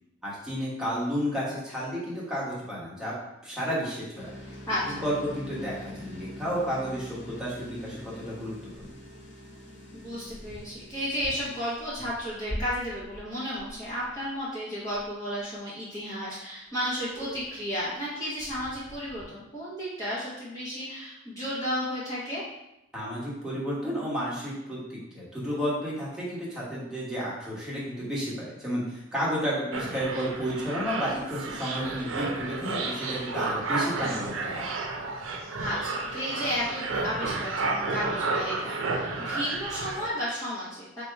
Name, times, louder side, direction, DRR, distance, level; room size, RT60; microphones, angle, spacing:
voice 1, 0.2-3.1 3.4-4.3 4.9-8.9 22.9-34.7, equal, 5° right, -8 dB, 1.2 m, -32 dB
sound 1, 4.1-11.8, left 1 dB, 65° left, 0.9 m, -45 dB
voice 2, 4.7-5.0 9.9-22.4 35.6-41.0, equal, 15° left, -10 dB, 0.9 m, -33 dB
sound 2, 8.7-9.2 9.9-14.5 14.8-15.1 15.3-15.4 15.9-16.0 16.2-16.3 16.7-17.8 18.4-19.3, equal, 40° left, 1.5 m, -43 dB
sound 3, 29.7-40.1, right 3 dB, 85° right, 0.5 m, -32 dB
3.4 x 2.9 x 4.5 m, 0.88 s
head